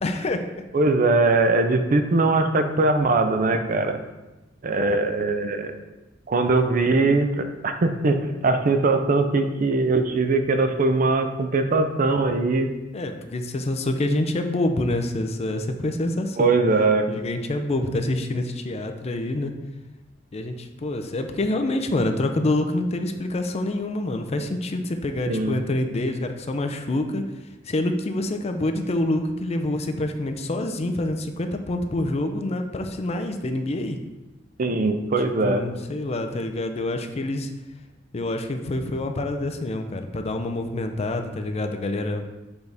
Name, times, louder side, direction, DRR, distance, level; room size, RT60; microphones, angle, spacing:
voice 1, 0.0-0.7 12.9-16.6 17.1-19.5 20.3-27.2 27.6-34.0 35.4-37.5 38.1-42.3, left 1 dB, 35° left, 6 dB, 0.5 m, -26 dB
voice 2, 0.7-4.0 4.6-5.7 6.3-12.7 16.4-17.1 25.3-25.6 34.6-35.6, right 3 dB, 45° right, 7 dB, 0.5 m, -21 dB
7.0 x 4.0 x 3.4 m, 1.1 s
head